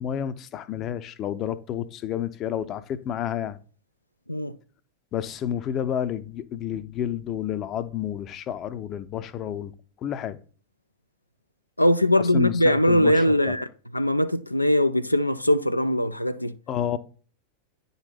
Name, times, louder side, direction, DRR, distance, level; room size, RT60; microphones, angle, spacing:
voice 1, 0.0-3.6 5.1-9.7 10.0-10.4 12.3-13.5 16.7-17.0, left 9 dB, 35° left, 0.6 m, -30 dB
voice 2, 11.8-13.7 13.9-16.5, left 1 dB, 85° left, 0.3 m, -21 dB
9.5 x 4.0 x 4.3 m
figure-of-eight pair, 90°, 0 cm